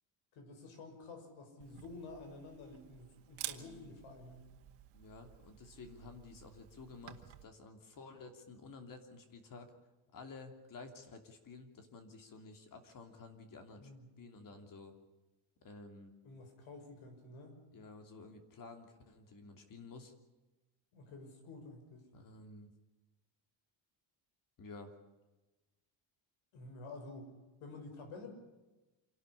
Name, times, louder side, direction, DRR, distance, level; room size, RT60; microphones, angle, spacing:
voice 1, 0.3-4.5 13.8-14.1 16.2-17.5 20.9-22.1 26.5-27.3 27.6-28.3, left 3 dB, 75° left, 5 dB, 6.4 m, -50 dB
Camera, 1.6-7.4, right 14 dB, 75° right, 2.0 m, -51 dB
voice 2, 3.5-4.0 4.9-9.7 10.1-13.9 14.2-14.9 15.6-16.1 17.7-20.1 22.1-22.7 24.6-24.9, left 3 dB, 40° left, 6 dB, 3.0 m, -52 dB
27.0 x 12.5 x 10.0 m, 1.1 s
cardioid pair, 155°, 49 cm